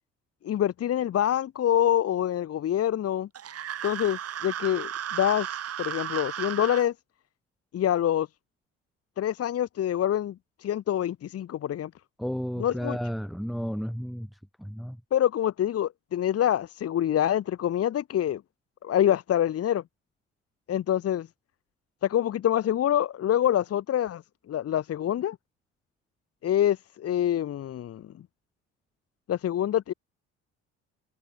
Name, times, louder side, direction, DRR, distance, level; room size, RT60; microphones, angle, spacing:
voice 1, 0.4-3.3 3.8-5.5 5.8-6.9 7.7-8.3 9.2-11.9 12.6-13.0 15.1-18.4 18.8-19.8 20.7-21.3 22.0-24.2 24.5-25.4 26.4-28.0 29.3-29.9, left 11 dB, 55° left, 1.9 m, -26 dB
sound 1, 3.3-6.9, right 10 dB, 55° right, 5.2 m, -34 dB
voice 2, 12.2-14.3 14.6-15.0, equal, ahead, 2.0 m, -32 dB
supercardioid pair, 80°, 29 cm